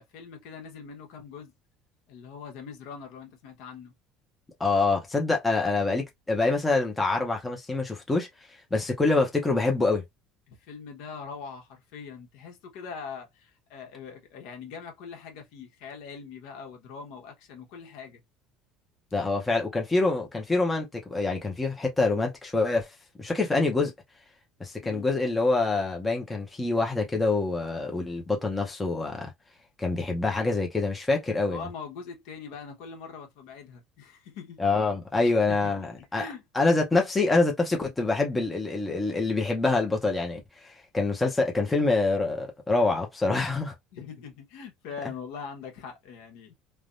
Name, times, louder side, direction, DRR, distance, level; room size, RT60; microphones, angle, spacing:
voice 1, 0.0-1.5 2.1-3.9 10.5-18.2 24.8-25.1 31.5-34.6 35.2-36.4 43.9-46.5, left 6 dB, 70° left, 1.0 m, -42 dB
voice 2, 4.6-8.3 8.7-10.0 19.1-22.9 23.2-23.9 24.6-29.3 29.8-31.7 34.6-36.3 36.5-43.7, left 3 dB, 10° left, 0.6 m, -26 dB
3.3 x 2.1 x 2.5 m
cardioid pair, 165°, 0 cm